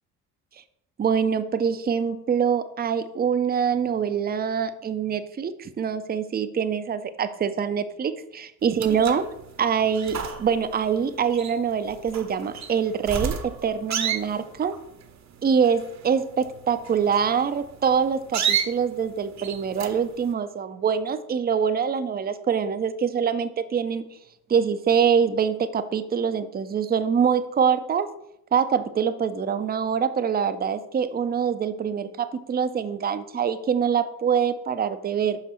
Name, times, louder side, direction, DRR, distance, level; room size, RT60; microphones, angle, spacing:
voice 1, 1.0-9.3 9.6-14.7 15.4-24.0 24.5-28.1 28.5-35.4, right 7 dB, 20° right, 11 dB, 0.6 m, -24 dB
sound 1, 8.6-20.3, right 8 dB, 40° right, 0.9 m, -33 dB
5.7 x 5.6 x 4.3 m, 0.78 s
hypercardioid pair, 50°, 43 cm